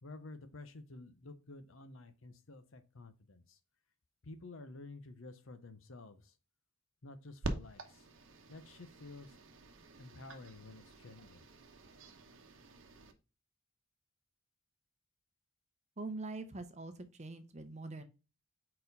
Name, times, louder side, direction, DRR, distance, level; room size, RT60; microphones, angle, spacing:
voice 1, 0.0-3.6 4.2-6.3 7.0-8.0 8.5-9.3 10.0-11.4, left 2 dB, 70° left, 0.8 m, -51 dB
sound 1, 7.4-13.1, right 2 dB, 65° right, 0.9 m, -46 dB
voice 2, 16.0-18.0, right 2 dB, 35° right, 0.7 m, -43 dB
4.4 x 4.3 x 5.3 m
head